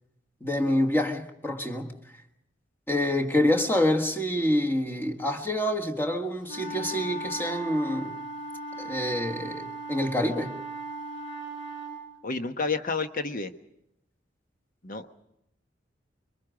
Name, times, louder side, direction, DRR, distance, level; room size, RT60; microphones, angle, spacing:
voice 1, 0.4-1.9 2.9-8.2 8.8-10.5, left 1 dB, 10° left, 1.6 m, -27 dB
sound 1, 6.5-12.0, right 2 dB, 90° left, 7.3 m, -37 dB
voice 2, 12.2-13.5 14.8-15.1, left 4 dB, 50° left, 1.2 m, -30 dB
25.5 x 23.0 x 5.1 m
head